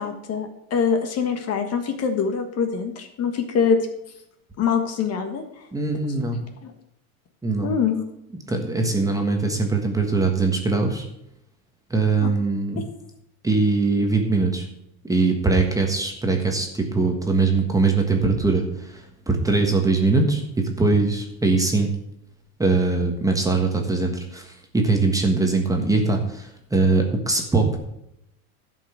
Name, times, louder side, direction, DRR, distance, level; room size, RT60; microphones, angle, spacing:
voice 1, 0.0-3.8 4.6-5.4 6.6-6.7 7.6-8.0 12.2-12.3, left 6 dB, 35° left, 6 dB, 1.5 m, -24 dB
voice 2, 5.7-6.4 7.4-7.7 8.5-11.1 11.9-12.8 13.4-14.6 15.0-21.9 22.6-27.8, right 3 dB, 10° right, 3 dB, 1.4 m, -22 dB
11.5 x 5.5 x 6.6 m, 0.82 s
supercardioid pair, 125°, 43 cm